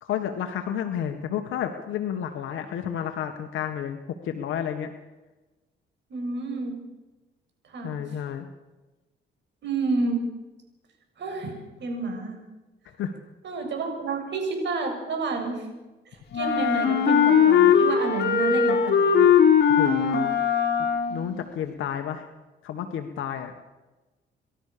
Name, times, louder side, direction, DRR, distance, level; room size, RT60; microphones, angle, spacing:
voice 1, 0.0-4.0 4.2-4.9 7.8-8.5 13.0-13.1 19.8-20.4 20.8-22.3 22.6-23.5, left 9 dB, 80° left, 5 dB, 1.7 m, -31 dB
voice 2, 6.1-6.8 7.7-8.2 9.6-10.2 11.2-11.5 11.8-12.4 13.4-15.7 16.1-19.3, right 3 dB, 65° right, 3 dB, 7.4 m, -30 dB
Wind instrument woodwind instrument, 16.3-21.4, left 7 dB, 55° left, 4.1 m, -20 dB
30.0 x 13.0 x 6.9 m, 1.1 s
cardioid pair, 90°, 20 cm